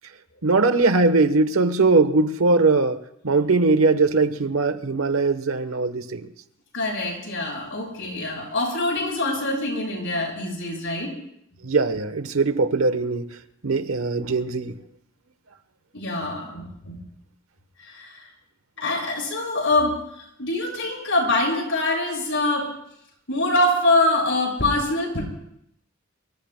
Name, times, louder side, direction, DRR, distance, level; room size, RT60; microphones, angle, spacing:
voice 1, 0.4-3.0 3.2-6.3 11.6-13.3 13.6-14.8, right 3 dB, 85° right, 1.0 m, -20 dB
voice 2, 6.7-11.1 15.9-17.0 17.8-18.3 18.8-22.7 23.3-25.2, left 2 dB, 65° left, 6.6 m, -24 dB
25.0 x 24.0 x 2.2 m
head